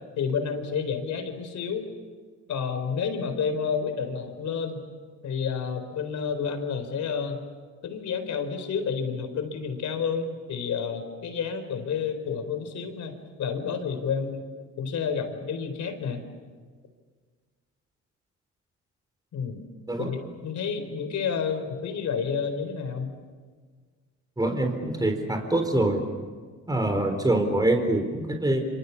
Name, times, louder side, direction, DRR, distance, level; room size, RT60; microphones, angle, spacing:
voice 1, 0.2-1.8 2.5-4.8 5.2-7.4 7.8-14.5 14.8-16.2 19.3-19.6 20.0-23.2, left 6 dB, 70° left, 8 dB, 4.4 m, -30 dB
voice 2, 24.4-26.0 26.7-28.6, right 1 dB, 15° right, 5 dB, 4.1 m, -24 dB
26.5 x 26.5 x 7.2 m, 1.6 s
cardioid pair, 90°, 30 cm